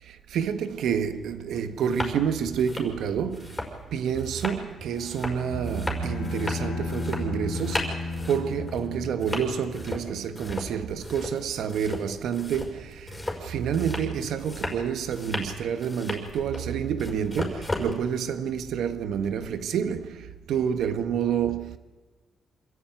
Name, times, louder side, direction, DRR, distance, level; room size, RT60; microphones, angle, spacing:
voice 1, 0.1-3.6 3.9-13.1 13.4-21.8, right 8 dB, 80° right, 1.4 m, -28 dB
sound 1, 1.1-1.2 1.7-2.2 2.5-17.9, left 1 dB, 15° left, 5.5 m, -35 dB
Bowed string instrument, 4.9-9.7, left 4 dB, 70° left, 3.6 m, -34 dB
26.5 x 14.5 x 9.2 m
cardioid pair, 115°, 0 cm